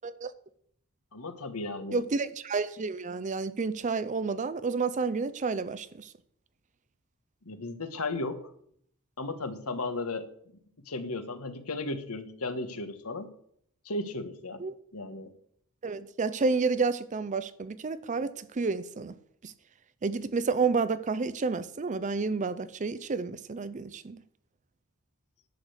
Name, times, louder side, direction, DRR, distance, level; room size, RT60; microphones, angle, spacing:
voice 1, 1.1-2.0 7.4-8.4 9.2-10.3 10.8-13.3 13.8-14.6 14.9-15.3, left 2 dB, 75° left, 1.4 m, -35 dB
voice 2, 1.9-6.1 14.6-14.7 15.8-19.1 19.4-19.5 20.0-24.2, right 4 dB, 35° right, 0.5 m, -30 dB
11.0 x 6.6 x 8.0 m
head